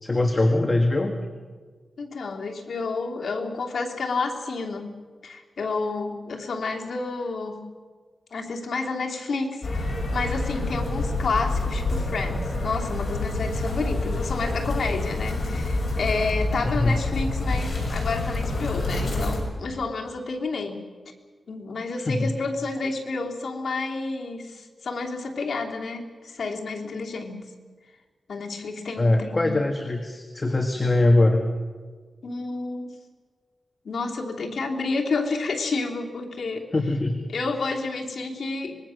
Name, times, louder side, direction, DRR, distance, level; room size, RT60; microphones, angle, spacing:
voice 1, 0.0-1.1 16.6-17.0 22.0-22.3 29.0-31.4 36.7-37.3, left 2 dB, 25° left, 3 dB, 1.7 m, -22 dB
voice 2, 2.0-4.9 5.2-7.6 8.3-20.8 21.5-27.5 28.3-29.5 32.2-32.9 33.8-36.7 37.3-38.8, left 3 dB, 75° left, 0 dB, 3.0 m, -30 dB
sound 1, 9.6-19.4, left 2 dB, 45° left, 6.6 m, -27 dB
25.0 x 21.5 x 6.5 m, 1.5 s
wide cardioid pair, 145°, 0 cm